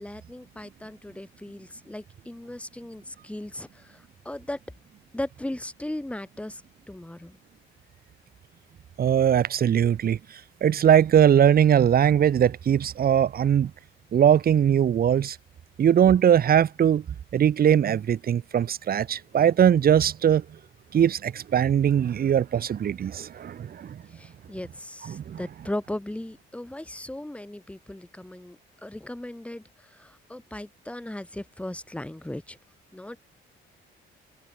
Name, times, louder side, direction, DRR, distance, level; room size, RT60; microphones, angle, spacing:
voice 1, 0.0-4.6 5.1-6.6 6.9-7.4 24.1-32.6 32.9-33.2, left 1 dB, 5° left, 2.3 m, -37 dB
voice 2, 9.0-13.7 14.1-15.4 15.8-17.0 17.3-20.4 20.9-24.0 25.0-25.4, right 9 dB, 45° right, 1.0 m, -21 dB
cardioid pair, 115°, 21 cm